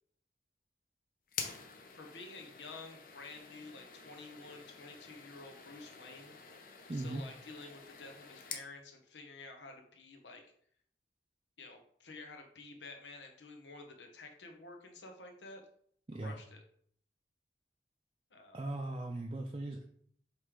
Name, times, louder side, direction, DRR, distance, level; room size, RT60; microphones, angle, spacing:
sound 1, 1.3-8.7, left 6 dB, 50° left, 0.8 m, -48 dB
voice 1, 1.9-6.4 6.9-10.4 11.6-15.6 16.2-16.6 18.3-18.6, left 3 dB, 90° left, 3 dB, 1.1 m, -51 dB
voice 2, 6.9-7.2 16.1-16.4 18.5-19.8, right 2 dB, 30° right, 1 dB, 0.5 m, -38 dB
7.8 x 3.2 x 3.7 m, 0.63 s
head